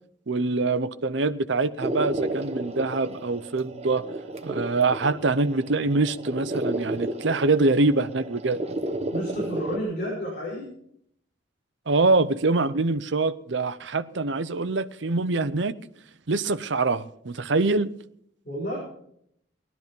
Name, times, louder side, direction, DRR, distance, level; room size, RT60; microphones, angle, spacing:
voice 1, 0.3-4.0 4.4-8.6 11.9-15.8 16.3-17.9, right 3 dB, 65° right, 0.7 m, -24 dB
sound 1, 1.8-9.8, right 1 dB, 35° right, 1.1 m, -32 dB
voice 2, 9.1-10.7 18.4-18.8, equal, 45° left, 6.3 m, -31 dB
18.0 x 12.5 x 5.3 m
head